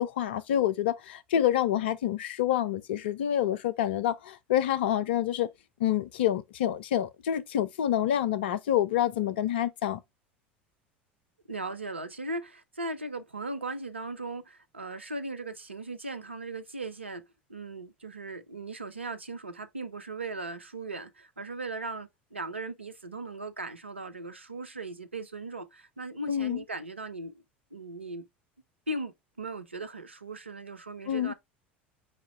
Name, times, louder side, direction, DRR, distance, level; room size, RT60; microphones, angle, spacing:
voice 1, 0.0-5.5 5.8-10.0 26.3-26.6 31.1-31.3, left 11 dB, 60° left, 0.5 m, -27 dB
voice 2, 11.5-27.4 27.7-28.3 28.9-31.3, right 2 dB, 85° right, 0.6 m, -38 dB
4.9 x 4.3 x 2.3 m
figure-of-eight pair, 75°, 6 cm